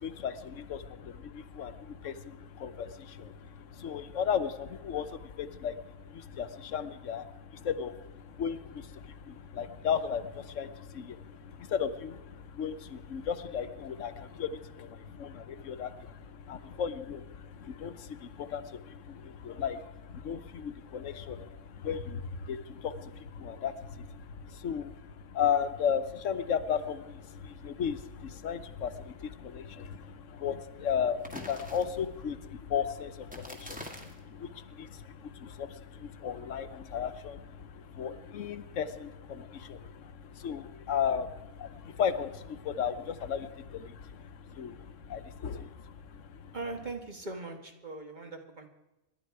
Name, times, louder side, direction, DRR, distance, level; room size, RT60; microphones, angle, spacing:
voice 1, 0.0-46.6, left 7 dB, 75° left, 11 dB, 1.2 m, -35 dB
sound 1, 31.2-32.2 33.2-34.2, equal, 5° right, 2.0 m, -45 dB
voice 2, 46.5-48.7, right 3 dB, 35° right, 4 dB, 1.6 m, -40 dB
26.5 x 11.5 x 4.7 m, 1.0 s
omnidirectional pair, 1.3 m